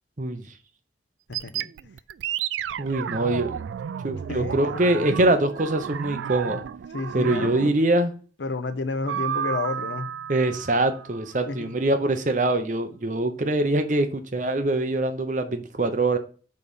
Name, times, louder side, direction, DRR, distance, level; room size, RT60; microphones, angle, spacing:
sound 1, 1.3-7.9 9.1-11.6, right 9 dB, 90° right, 0.3 m, -32 dB
voice 1, 2.8-3.6 4.0-6.6 7.1-8.1 10.3-16.2, right 2 dB, 45° right, 0.8 m, -23 dB
voice 2, 4.3-4.9 6.9-7.7 8.4-10.1 11.5-11.7, left 3 dB, 85° left, 0.7 m, -30 dB
5.3 x 4.1 x 5.3 m
head